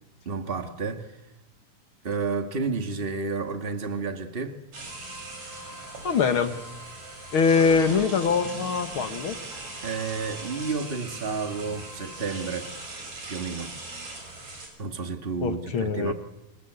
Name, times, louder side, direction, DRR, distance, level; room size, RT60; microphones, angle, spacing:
voice 1, 0.2-1.1 2.0-4.6 9.8-12.7 13.3-13.7 14.8-16.1, right 4 dB, 25° right, 1.4 m, -31 dB
sound 1, 4.7-14.7, right 2 dB, 60° right, 7.4 m, -40 dB
sound 2, 4.8-12.7, equal, 30° left, 5.6 m, -48 dB
voice 2, 6.0-6.6 7.3-9.4 15.4-16.1, left 5 dB, 50° left, 2.1 m, -23 dB
28.5 x 24.0 x 8.2 m
omnidirectional pair, 3.5 m